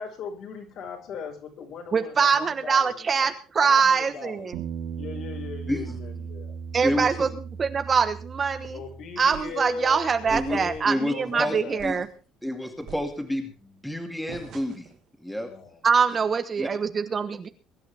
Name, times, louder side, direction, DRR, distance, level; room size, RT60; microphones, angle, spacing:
voice 1, 0.0-3.3 3.6-4.5 5.0-6.5 8.6-11.9 15.4-15.8, left 5 dB, 50° left, 3 dB, 5.4 m, -38 dB
voice 2, 1.9-4.6 6.7-7.3 7.6-8.8 9.2-12.1 15.8-17.5, right 6 dB, 25° right, 9 dB, 1.1 m, -23 dB
Bass guitar, 4.5-9.3 9.6-10.8, right 6 dB, 75° right, 2.6 m, -38 dB
voice 3, 6.8-7.3 10.3-10.6 10.8-11.6 11.8-12.0 12.4-14.9 15.2-15.5 16.6-16.7, left 1 dB, ahead, 4 dB, 2.4 m, -29 dB
sound 1, 9.3-9.7 10.3-10.9 11.3-11.4 11.8-12.1 12.9-13.5 14.3-15.0, right 8 dB, 40° right, 1.7 m, -43 dB
22.5 x 11.5 x 3.5 m, 0.35 s
cardioid pair, 160°, 0 cm